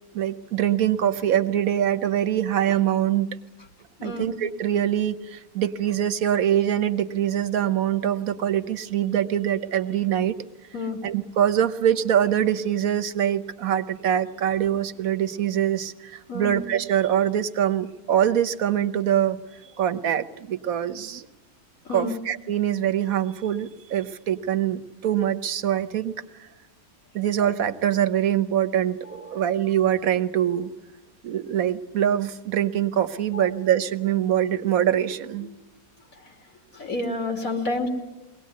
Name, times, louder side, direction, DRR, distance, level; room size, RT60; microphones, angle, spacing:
voice 1, 0.1-3.3 4.0-10.4 11.0-19.4 19.8-21.3 21.9-26.1 27.1-30.7 31.2-35.5, right 10 dB, 70° right, 12 dB, 1.4 m, -24 dB
voice 2, 29.1-29.4 33.3-33.5 35.4-35.5 36.2-36.3 36.7-37.9, left 2 dB, 65° left, 3 dB, 3.2 m, -30 dB
23.0 x 18.5 x 9.4 m, 1.1 s
omnidirectional pair, 1.5 m